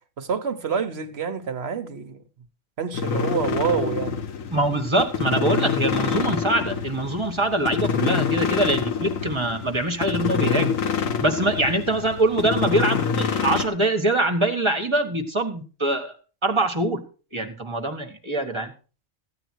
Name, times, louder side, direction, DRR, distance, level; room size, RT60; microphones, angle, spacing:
voice 1, 0.2-2.2 2.8-4.2, right 6 dB, 55° right, 1.1 m, -27 dB
sound 1, 2.9-13.7, left 6 dB, 80° left, 1.5 m, -26 dB
voice 2, 4.5-10.8 11.2-16.1 16.4-17.0 17.3-18.7, right 2 dB, 20° right, 1.5 m, -23 dB
14.5 x 9.1 x 4.5 m
omnidirectional pair, 1.4 m